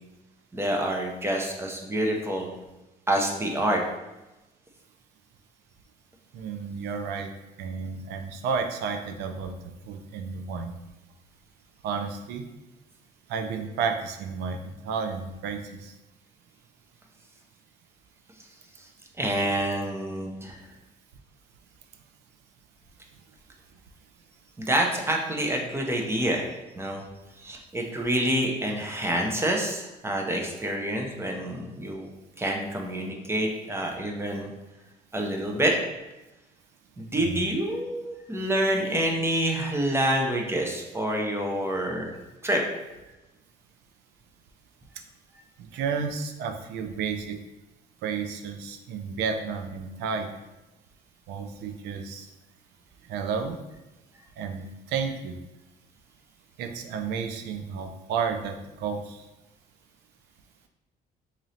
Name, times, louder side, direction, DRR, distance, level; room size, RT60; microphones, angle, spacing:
voice 1, 0.5-2.5 3.1-3.8 19.2-20.6 24.6-26.5 26.8-27.0 27.4-32.1 32.4-34.5 35.1-35.7 37.0-42.2 42.4-42.6, right 1 dB, 15° right, 1 dB, 0.6 m, -27 dB
voice 2, 6.3-7.3 7.6-9.5 9.9-10.7 11.8-12.4 13.3-15.9 37.2-37.4 45.7-47.4 48.0-50.3 51.3-52.3 53.1-53.6 54.4-55.4 56.6-59.2, right 5 dB, 85° right, 6 dB, 0.5 m, -32 dB
3.9 x 3.0 x 2.7 m, 1.0 s
cardioid pair, 110°, 17 cm